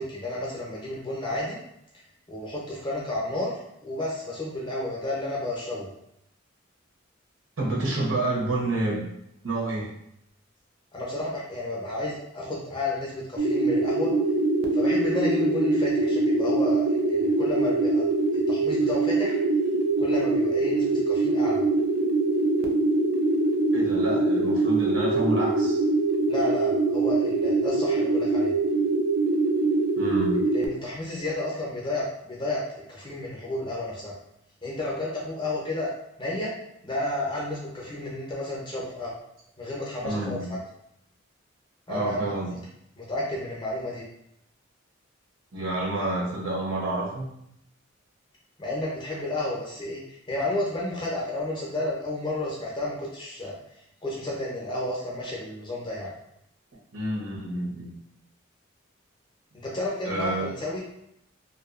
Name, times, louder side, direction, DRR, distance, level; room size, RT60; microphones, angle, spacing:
voice 1, 0.0-1.6 2.3-3.5 3.8-5.9 10.9-14.1 14.7-18.1 18.5-19.4 20.0-21.6 26.3-28.5 30.5-32.6 32.9-34.1 34.6-35.9 36.2-36.5 36.8-39.1 39.6-40.6 41.9-42.6 43.0-44.0 48.6-53.5 54.0-56.1 59.5-60.8, left 1 dB, 20° left, -5 dB, 0.6 m, -31 dB
voice 2, 7.6-9.0 9.4-9.9 23.7-25.8 30.0-30.4 40.0-40.5 41.9-42.6 45.5-47.3 56.9-58.0 60.0-60.5, right 2 dB, 75° right, -4 dB, 0.9 m, -29 dB
sound 1, 13.4-30.7, right 2 dB, 50° right, 0.3 m, -23 dB
2.6 x 2.3 x 2.4 m, 0.76 s
head